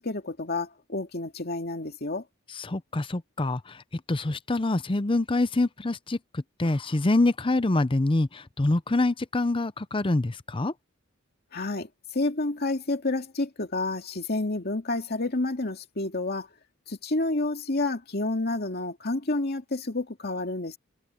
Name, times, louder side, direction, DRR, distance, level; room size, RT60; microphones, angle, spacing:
voice 1, 0.0-2.2 11.5-16.5 16.9-20.8, left 2 dB, 50° left, 2.4 m, -29 dB
voice 2, 2.5-10.7, left 2 dB, 25° left, 0.6 m, -26 dB
head